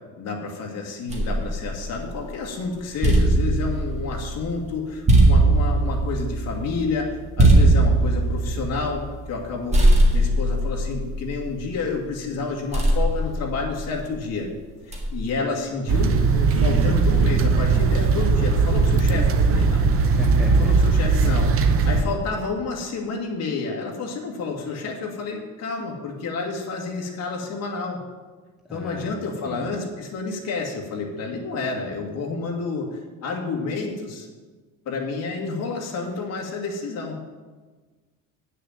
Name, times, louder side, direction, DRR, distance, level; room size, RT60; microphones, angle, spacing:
voice 1, 0.2-14.5 15.1-19.9 20.6-28.0 28.7-34.3 34.9-37.2, left 4 dB, 45° left, 0 dB, 2.0 m, -30 dB
sound 1, 1.1-2.4 2.8-9.4 9.7-12.0 12.7-14.2 14.9-15.4, right 1 dB, 20° right, 1.6 m, -20 dB
sound 2, 15.9-22.0, right 4 dB, 40° right, 0.8 m, -19 dB
voice 2, 19.9-20.8 28.7-29.6, equal, ahead, -1 dB, 0.7 m, -32 dB
9.2 x 6.6 x 7.3 m, 1.4 s
cardioid pair, 170°, 35 cm